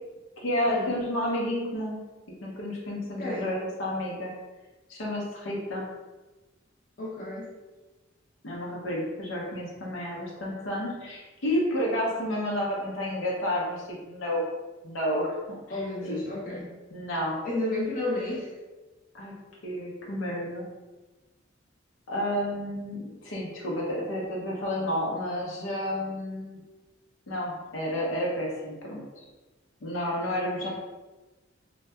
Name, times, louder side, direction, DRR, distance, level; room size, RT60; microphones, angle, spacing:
voice 1, 0.4-2.0 2.4-4.3 4.9-5.9 8.4-14.4 14.8-15.8 16.1-16.2 16.9-17.4 19.1-19.3 19.6-20.7 22.1-26.6 27.3-29.0 29.8-30.7, left 1 dB, 80° left, -3 dB, 0.7 m, -30 dB
voice 2, 3.2-3.5 7.0-7.5 15.7-16.7 17.4-18.5 30.6-30.7, left 2 dB, 45° left, -5 dB, 0.6 m, -32 dB
2.6 x 2.2 x 2.3 m, 1.2 s
head